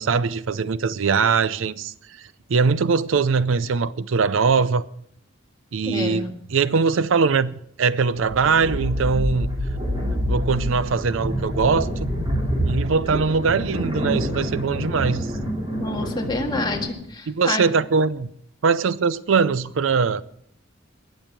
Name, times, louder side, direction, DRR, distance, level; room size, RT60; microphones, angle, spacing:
voice 1, 0.0-4.8 5.7-9.5 10.3-12.1 12.7-15.3 17.3-18.3 18.6-20.2, right 5 dB, 70° right, 0.5 m, -21 dB
voice 2, 5.9-6.3 15.8-17.6, left 2 dB, 20° left, 1.8 m, -27 dB
sound 1, 8.2-16.9, equal, 25° right, 3.8 m, -27 dB
20.0 x 7.2 x 6.0 m
head